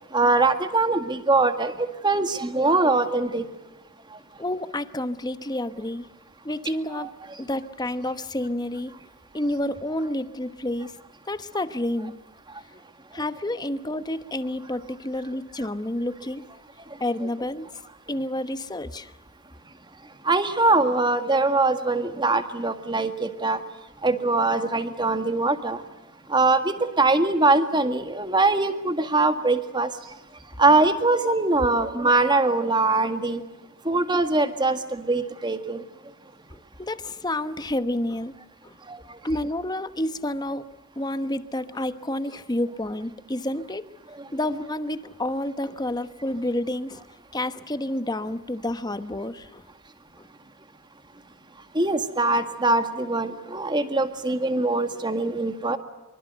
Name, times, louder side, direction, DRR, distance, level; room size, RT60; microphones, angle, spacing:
voice 1, 0.1-3.4 6.9-7.1 20.3-23.6 24.0-25.8 26.3-29.9 30.6-33.4 33.9-35.8 38.9-39.0 51.7-55.8, right 3 dB, 20° right, 9 dB, 1.8 m, -22 dB
voice 2, 4.4-6.1 6.4-7.1 7.4-8.9 9.3-10.9 11.3-12.1 13.1-16.4 17.0-17.7 18.1-19.1 36.5-38.3 38.6-38.7 39.2-40.6 41.0-43.9 44.3-47.0 47.3-49.6 50.2-50.3, left 1 dB, 20° left, 12 dB, 1.0 m, -29 dB
25.0 x 24.5 x 8.0 m, 1.1 s
head